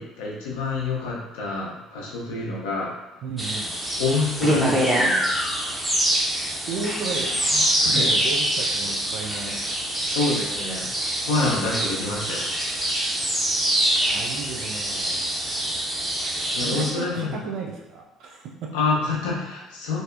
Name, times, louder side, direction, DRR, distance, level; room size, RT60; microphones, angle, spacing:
voice 1, 0.0-2.9 4.0-5.2 7.8-8.1 10.0-10.9 11.2-12.7 16.5-17.3 18.7-20.0, left 3 dB, 70° left, -3 dB, 0.5 m, -27 dB
voice 2, 3.2-3.7 4.4-4.7 6.7-9.6 14.1-15.4 16.6-18.8, right 4 dB, 60° right, 0 dB, 0.4 m, -34 dB
sound 1, 3.4-16.9, right 1 dB, 15° right, 0.7 m, -25 dB
2.6 x 2.1 x 2.3 m, 0.96 s
figure-of-eight pair, 50°, 0 cm